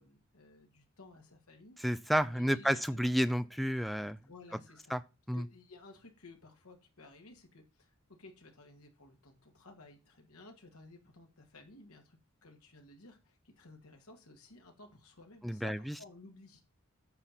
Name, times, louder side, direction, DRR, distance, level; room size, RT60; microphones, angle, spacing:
voice 1, 0.0-1.8 2.3-3.0 4.3-4.9 5.3-16.6, left 2 dB, 90° left, 2.0 m, -56 dB
voice 2, 1.8-4.2 4.9-5.0 5.3-5.4 15.4-15.9, equal, ahead, 0.4 m, -31 dB
9.0 x 4.3 x 7.3 m
head